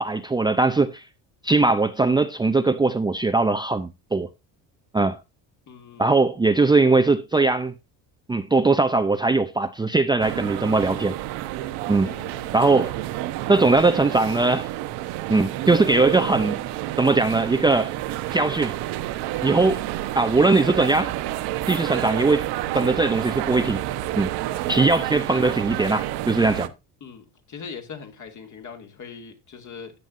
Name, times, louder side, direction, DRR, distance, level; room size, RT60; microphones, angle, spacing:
voice 1, 0.0-1.0 1.4-4.3 4.9-5.2 6.0-7.7 8.3-11.2 11.9-12.1 12.5-12.9 13.5-14.7 15.3-16.6 17.0-17.9 18.3-18.7 19.4-19.8 20.1-21.1 21.7-23.8 24.2-24.3 24.7-26.7, right 3 dB, 10° right, 0.5 m, -20 dB
voice 2, 5.7-6.2 12.1-12.9 27.0-29.9, left 6 dB, 50° left, 2.4 m, -41 dB
sound 1, 10.2-26.7, right 14 dB, 75° right, 1.0 m, -29 dB
13.5 x 9.0 x 2.6 m
supercardioid pair, 95°, 39 cm